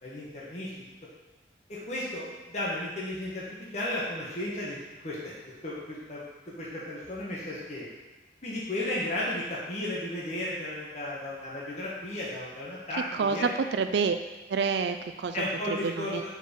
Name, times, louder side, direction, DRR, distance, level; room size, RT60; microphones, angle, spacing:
voice 1, 0.0-0.7 1.7-5.3 5.6-7.9 8.4-13.5 15.3-16.4, left 1 dB, 40° left, -6 dB, 1.2 m, -34 dB
voice 2, 13.2-14.2 14.5-15.3 16.0-16.2, right 5 dB, 80° right, 8 dB, 0.4 m, -27 dB
4.7 x 4.4 x 5.1 m, 1.2 s
head